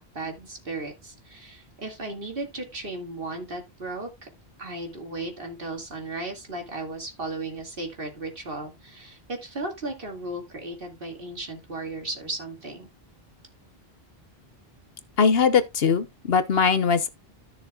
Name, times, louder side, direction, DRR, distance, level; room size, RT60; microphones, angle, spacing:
voice 1, 0.0-4.1 4.6-12.9, right 2 dB, 65° right, 2.5 m, -35 dB
voice 2, 15.2-17.1, left 6 dB, 70° left, 1.2 m, -21 dB
14.0 x 6.4 x 2.4 m
omnidirectional pair, 1.0 m